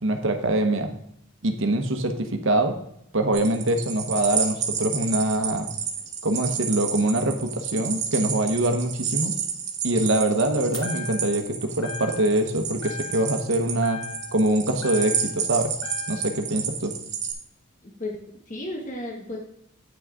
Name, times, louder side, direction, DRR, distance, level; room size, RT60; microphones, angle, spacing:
voice 1, 0.0-0.9 1.4-2.7 3.1-5.7 6.2-9.3 9.8-14.0 14.3-15.7 16.1-16.9, right 1 dB, 60° right, 5 dB, 1.0 m, -24 dB
sound 1, 3.3-17.3, right 7 dB, 30° right, 1.2 m, -30 dB
sound 2, 10.7-11.5 11.8-12.5 12.8-13.5 13.8-15.5 15.8-16.4, left 5 dB, 80° left, 1.7 m, -38 dB
voice 2, 17.8-19.4, left 1 dB, 35° left, 0 dB, 1.2 m, -34 dB
9.1 x 6.2 x 3.6 m, 0.73 s
head